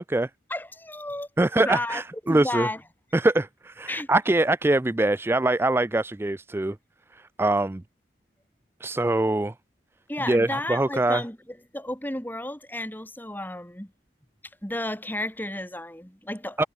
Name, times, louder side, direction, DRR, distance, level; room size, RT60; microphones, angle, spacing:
voice 1, 0.5-2.8 3.9-4.1 10.1-13.9 14.6-16.7, left 1 dB, 10° left, 2.4 m, -33 dB
voice 2, 1.4-2.7 3.1-6.8 7.1-7.8 8.8-9.5 10.3-11.2 16.6-16.7, right 2 dB, 15° right, 0.3 m, -23 dB
head